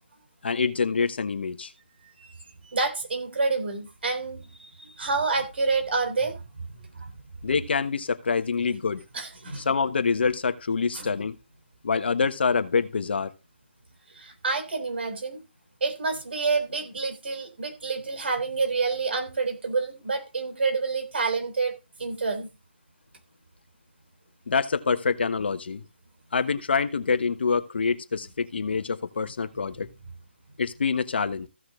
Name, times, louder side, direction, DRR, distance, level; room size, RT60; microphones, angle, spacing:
voice 1, 0.4-1.7 7.4-9.0 9.6-11.4 11.8-13.3 24.5-25.8 26.3-29.9 30.6-31.5, left 5 dB, 60° left, 1.2 m, -26 dB
voice 2, 2.6-6.4 6.9-7.1 9.1-9.7 10.9-11.1 14.2-15.4 15.8-22.5, right 4 dB, 65° right, 3.4 m, -28 dB
15.0 x 6.4 x 3.7 m
figure-of-eight pair, 155°, 6 cm